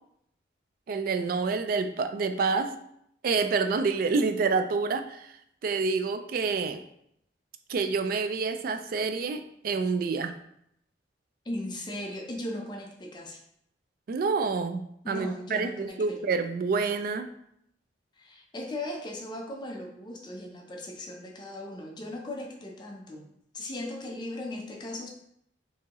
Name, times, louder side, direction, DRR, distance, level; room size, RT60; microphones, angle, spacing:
voice 1, 0.9-2.8 3.2-5.3 5.6-6.8 7.7-10.4 14.1-17.3, right 4 dB, 50° right, 9 dB, 0.3 m, -28 dB
voice 2, 11.4-13.4 15.0-16.2 18.1-23.3 23.5-25.1, left 1 dB, 25° left, 1 dB, 0.5 m, -38 dB
4.5 x 2.8 x 2.9 m, 0.73 s
head